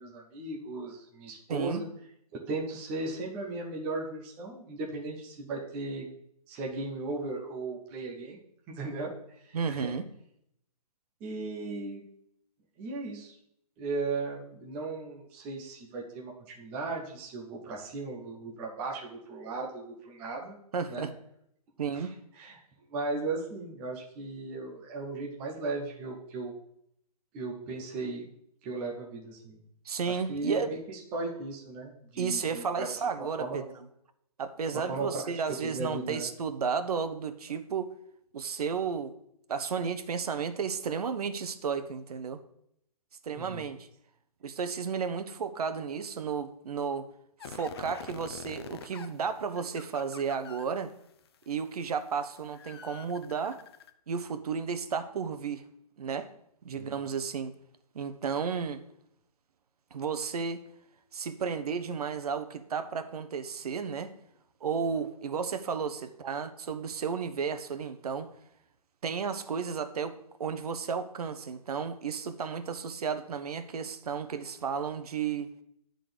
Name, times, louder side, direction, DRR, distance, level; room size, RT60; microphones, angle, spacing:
voice 1, 0.0-1.9 2.5-6.2 6.5-8.4 8.7-9.1 9.4-9.9 11.2-12.1 12.8-13.3 13.8-20.6 20.9-21.1 21.9-22.1 22.4-22.6 22.9-26.5 27.3-28.3 28.6-29.6 30.1-32.9 33.2-33.7 34.7-36.3 43.3-43.7 56.7-56.9, right 3 dB, 10° right, -1 dB, 0.4 m, -36 dB
voice 2, 1.5-1.8 9.5-10.0 20.7-21.1 21.8-22.1 29.8-30.7 32.2-33.9 34.4-37.9 38.3-39.1 39.5-42.4 43.2-43.9 44.4-47.1 47.4-50.9 51.5-53.6 54.1-55.6 56.0-56.3 56.6-57.5 57.9-58.8 59.9-60.6 61.1-64.1 64.6-68.3 69.0-75.5, right 6 dB, 75° right, 10 dB, 0.9 m, -33 dB
sound 1, 47.4-50.9 51.4-53.9, left 7 dB, 40° left, 0.6 m, -45 dB
9.5 x 3.9 x 6.6 m, 0.73 s
hypercardioid pair, 170°, 20 cm